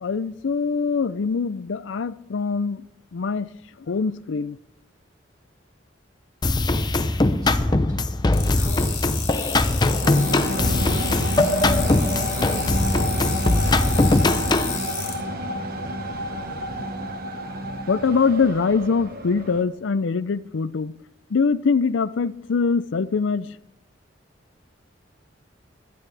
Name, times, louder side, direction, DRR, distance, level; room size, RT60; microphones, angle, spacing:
voice 1, 0.0-2.8 3.1-3.5 3.9-4.6 17.9-20.9 21.3-23.5, left 5 dB, 80° left, 0.5 m, -23 dB
sound 1, 6.4-14.8, left 2 dB, 25° left, 0.6 m, -21 dB
voice 2, 7.4-8.0 8.5-9.3 10.0-11.3, equal, 20° right, 3.7 m, -40 dB
sound 2, 8.3-15.1, left 7 dB, 40° left, 4.8 m, -32 dB
sound 3, 10.0-19.6, right 1 dB, 55° right, 1.2 m, -30 dB
17.0 x 13.0 x 3.4 m
head